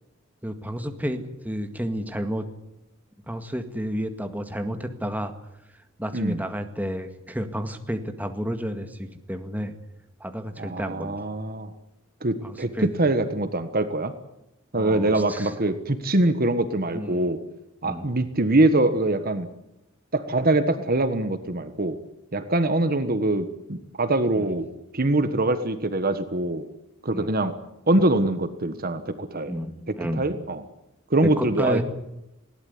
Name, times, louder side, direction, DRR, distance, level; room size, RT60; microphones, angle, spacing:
voice 1, 0.4-2.5 3.3-5.3 6.0-9.7 10.2-11.2 12.4-12.9 14.7-15.5 16.9-17.3 17.8-18.1 24.4-24.5 27.1-27.3 29.5-30.2 31.4-31.8, equal, 10° right, 6 dB, 1.9 m, -31 dB
voice 2, 10.6-11.7 12.2-14.1 14.7-17.4 17.8-19.5 20.1-22.0 22.3-24.7 24.9-26.6 27.0-27.5 27.9-29.5 30.2-30.7 31.1-31.8, right 2 dB, 45° right, 10 dB, 1.4 m, -23 dB
20.5 x 18.0 x 9.7 m, 0.89 s
head